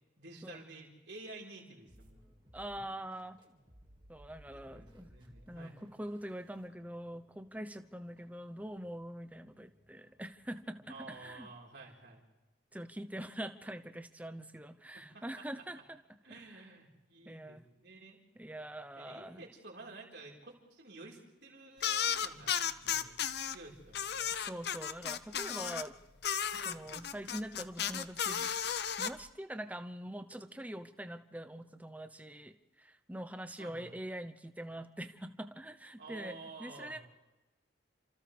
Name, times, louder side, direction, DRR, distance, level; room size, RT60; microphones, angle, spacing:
voice 1, 0.2-2.2 4.5-5.8 10.9-12.2 14.9-15.5 16.2-18.2 18.9-23.2 23.4-24.2 26.7-26.9 33.6-33.9 36.0-37.0, right 2 dB, 60° right, -1 dB, 4.5 m, -51 dB
sound 1, 1.9-11.6, equal, 25° right, 2.2 m, -62 dB
voice 2, 2.5-3.4 4.1-5.1 5.5-11.5 12.7-16.0 17.2-17.7 18.4-19.5 24.3-26.0 26.5-28.5 29.0-37.0, right 1 dB, 10° right, 9 dB, 0.8 m, -44 dB
sound 2, 21.8-23.5 23.9-25.9 26.2-29.1, left 8 dB, 55° left, 0.7 m, -34 dB
30.0 x 27.0 x 3.4 m, 1.1 s
head